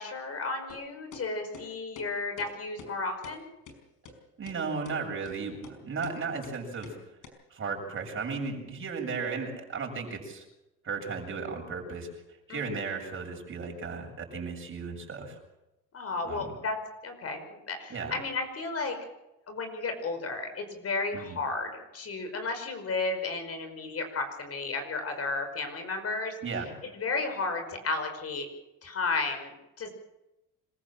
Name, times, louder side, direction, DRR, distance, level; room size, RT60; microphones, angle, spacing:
voice 1, 0.0-3.4 12.5-12.6 15.9-19.0 19.5-26.3 26.9-28.5 28.8-29.9, left 3 dB, 45° left, 6 dB, 5.2 m, -33 dB
sound 1, 0.7-0.8 1.1-1.2 1.5-1.7 2.0-2.1 2.4-2.5 2.8-2.9 3.2-3.4 3.7-3.8 4.0-4.1 4.5-4.6 4.8-5.0 5.3-5.4 5.6-5.8 6.0-6.2 6.4-6.6 6.8-7.0 7.2-7.3, left 4 dB, 65° left, 5.3 m, -46 dB
voice 2, 4.4-7.0 7.5-10.4 10.8-12.1 12.5-15.4 16.2-16.5 17.9-18.2 21.1-21.4 26.4-26.7, right 4 dB, 40° right, 0 dB, 7.3 m, -35 dB
26.0 x 15.0 x 7.5 m, 0.96 s
supercardioid pair, 85°, 33 cm